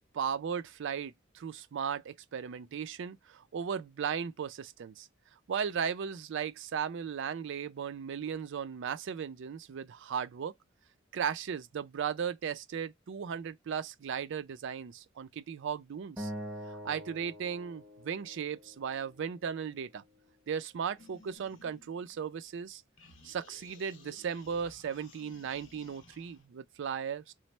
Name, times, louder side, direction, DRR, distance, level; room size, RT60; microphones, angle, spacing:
voice 1, 0.1-5.1 5.5-10.5 11.1-16.3 16.7-20.0 20.5-22.8 23.2-27.3, right 7 dB, 65° right, 0.4 m, -36 dB
Acoustic guitar, 16.2-19.4, equal, 10° right, 0.7 m, -44 dB
sound 1, 21.0-22.6 23.0-26.5, left 3 dB, 70° left, 0.7 m, -58 dB
3.1 x 2.0 x 4.1 m
head